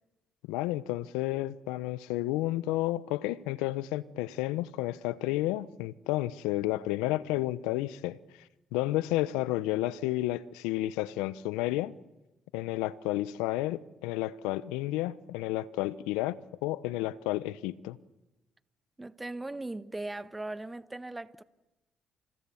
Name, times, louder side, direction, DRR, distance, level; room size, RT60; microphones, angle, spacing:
voice 1, 0.5-8.2 8.7-12.0 12.5-18.0, left 16 dB, 85° left, 0.9 m, -31 dB
voice 2, 19.0-21.4, right 2 dB, 20° right, 1.4 m, -38 dB
29.5 x 28.0 x 7.2 m
hypercardioid pair, 50°, 0 cm